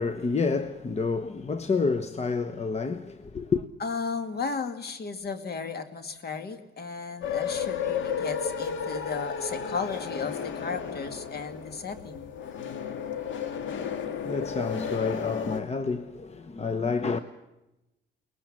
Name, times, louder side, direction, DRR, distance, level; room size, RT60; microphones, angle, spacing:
voice 1, 0.0-3.7 13.7-17.2, left 4 dB, 35° left, 1.0 m, -29 dB
voice 2, 3.8-12.3, left 5 dB, 55° left, 2.3 m, -34 dB
sound 1, 7.2-15.6, left 7 dB, 75° left, 1.8 m, -33 dB
23.0 x 19.5 x 7.5 m
cardioid pair, 90°, 20 cm